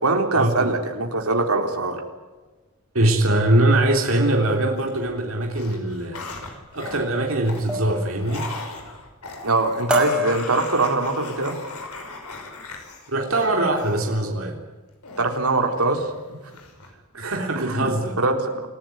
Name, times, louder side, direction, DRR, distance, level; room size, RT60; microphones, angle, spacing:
voice 1, 0.0-2.0 9.4-11.6 15.2-16.0 17.6-17.9 18.2-18.7, right 3 dB, 80° right, 4 dB, 4.1 m, -22 dB
voice 2, 2.9-6.3 6.7-8.5 13.1-14.6 17.1-18.1, right 1 dB, 65° right, 1 dB, 3.6 m, -22 dB
sound 1, 4.5-5.1 5.4-14.1 15.0-16.1 16.5-16.9, left 3 dB, 90° left, 5.5 m, -38 dB
sound 2, 6.7-7.0 7.7-8.0 8.4-8.9 9.3-9.5 9.9-11.2 11.8-12.1 12.4-12.8, left 1 dB, 5° right, 6.0 m, -29 dB
28.5 x 15.0 x 9.5 m, 1.2 s
head